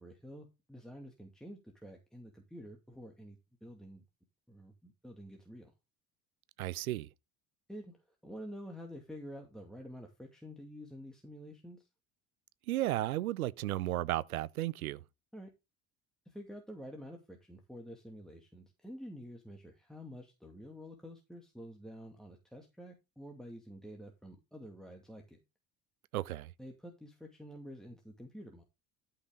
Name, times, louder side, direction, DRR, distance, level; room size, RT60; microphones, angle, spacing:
voice 1, 0.0-4.0 4.5-5.7 7.7-11.9 15.3-15.5 16.3-25.4 26.6-28.6, equal, ahead, 2.3 m, -49 dB
voice 2, 6.6-7.1 12.7-15.0 26.1-26.5, right 15 dB, 90° right, 0.6 m, -34 dB
13.0 x 5.9 x 3.8 m
hypercardioid pair, 65°, 42 cm